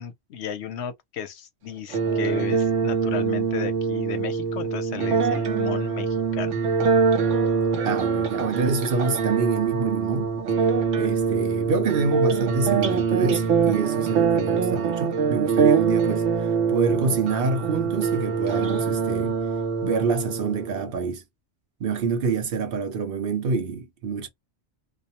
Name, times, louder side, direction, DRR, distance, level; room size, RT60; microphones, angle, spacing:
voice 1, 0.0-6.6, left 8 dB, 70° left, 0.8 m, -34 dB
sound 1, 1.9-20.9, right 5 dB, 80° right, 1.0 m, -24 dB
voice 2, 7.8-10.3 11.0-19.4 19.8-21.2 21.8-24.3, right 5 dB, 55° right, 0.8 m, -27 dB
2.4 x 2.1 x 2.8 m
omnidirectional pair, 1.2 m